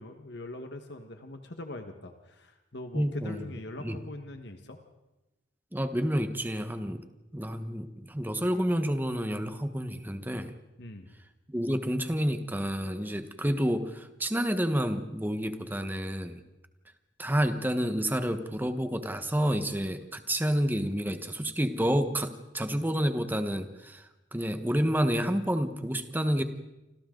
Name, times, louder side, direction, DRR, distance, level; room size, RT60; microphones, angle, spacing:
voice 1, 0.0-4.8 10.8-11.1, left 2 dB, 60° left, 5 dB, 1.6 m, -42 dB
voice 2, 2.9-3.4 3.8-4.0 5.7-7.0 7.3-10.5 11.5-16.4 17.2-26.4, equal, 10° right, 8 dB, 1.3 m, -29 dB
28.5 x 26.0 x 4.0 m, 1.0 s
head